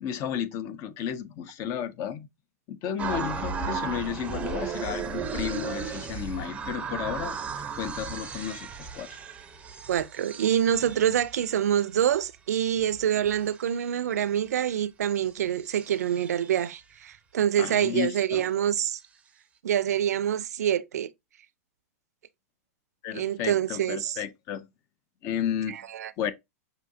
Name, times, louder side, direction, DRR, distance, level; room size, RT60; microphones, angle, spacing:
voice 1, 0.0-2.3 2.7-7.4 7.8-9.2 17.6-18.4 23.0-24.7 25.2-25.8 26.2-26.3, left 9 dB, 35° left, 0.5 m, -33 dB
sound 1, 3.0-12.2 12.7-14.0 15.3-15.4 15.6-16.6, right 5 dB, 15° right, 0.5 m, -35 dB
voice 2, 9.9-19.0 19.6-21.1 23.1-24.2 25.7-26.1, right 10 dB, 85° right, 0.4 m, -26 dB
5.9 x 2.7 x 2.6 m
hypercardioid pair, 130°, 8 cm